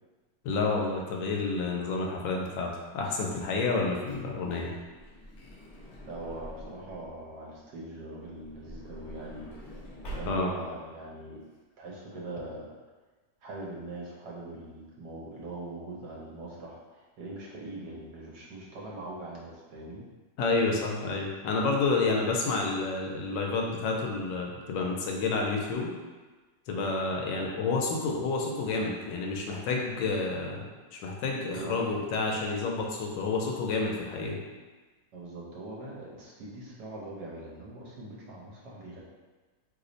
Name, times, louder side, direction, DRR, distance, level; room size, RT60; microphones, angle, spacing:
voice 1, 0.4-4.7 10.3-10.5 20.4-25.9 26.7-30.7 30.9-34.4, left 3 dB, 85° left, 0 dB, 1.3 m, -29 dB
Truck / Door, 4.0-7.2 8.2-10.7 11.4-11.5 11.7-11.9, right 1 dB, 55° left, 0.8 m, -45 dB
voice 2, 6.0-9.8 10.1-11.4 11.8-12.7 13.4-20.0 26.7-26.9 31.5-31.8 35.1-39.0, right 2 dB, 70° right, -4 dB, 1.2 m, -42 dB
3.2 x 2.0 x 3.8 m, 1.3 s
omnidirectional pair, 1.9 m